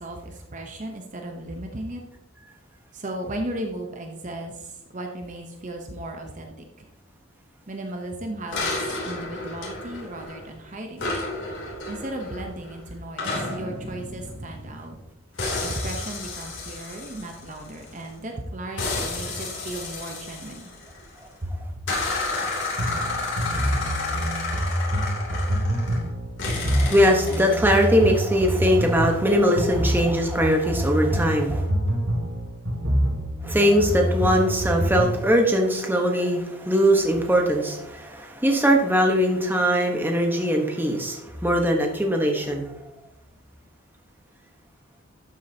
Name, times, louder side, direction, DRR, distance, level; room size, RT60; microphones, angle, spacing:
voice 1, 0.0-2.0 2.9-6.9 7.7-11.1 11.9-15.0 15.6-20.7 21.4-21.9, right 1 dB, 35° right, 3 dB, 0.8 m, -35 dB
sound 1, 8.5-10.6 11.0-15.0 15.4-18.1 18.8-21.2 21.9-26.1 26.4-27.9, left 3 dB, 60° left, 3.1 m, -31 dB
sound 2, 22.8-35.2, equal, 80° right, 2.1 m, -26 dB
voice 2, 26.7-31.7 33.4-42.7, equal, 10° right, 2 dB, 1.1 m, -21 dB
12.0 x 7.5 x 2.8 m, 0.88 s
head